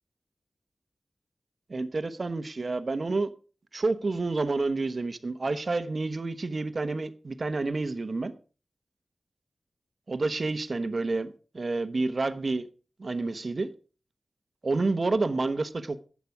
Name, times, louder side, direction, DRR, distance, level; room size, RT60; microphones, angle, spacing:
voice 1, 1.7-3.3 3.7-8.3 10.1-12.7 13.0-13.7 14.6-16.0, right 3 dB, 60° right, 0.9 m, -29 dB
11.5 x 8.4 x 4.7 m
wide cardioid pair, 60°, 0 cm